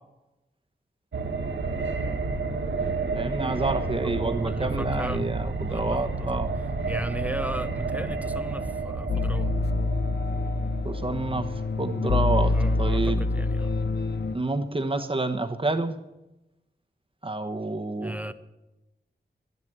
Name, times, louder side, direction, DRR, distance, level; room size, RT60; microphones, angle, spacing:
sound 1, 1.1-13.0 13.3-13.4, right 3 dB, 85° right, 1.4 m, -31 dB
voice 1, 3.1-6.5 10.8-13.3 14.3-16.0 17.2-18.3, right 2 dB, 30° right, 6 dB, 1.1 m, -29 dB
voice 2, 4.2-5.2 5.7-6.4 6.9-9.5 12.5-13.7 18.0-18.3, right 1 dB, 10° right, 12 dB, 0.7 m, -35 dB
sound 2, 9.1-14.4, left 2 dB, 65° left, 0.7 m, -26 dB
12.0 x 11.0 x 8.1 m, 0.96 s
wide cardioid pair, 105°, 19 cm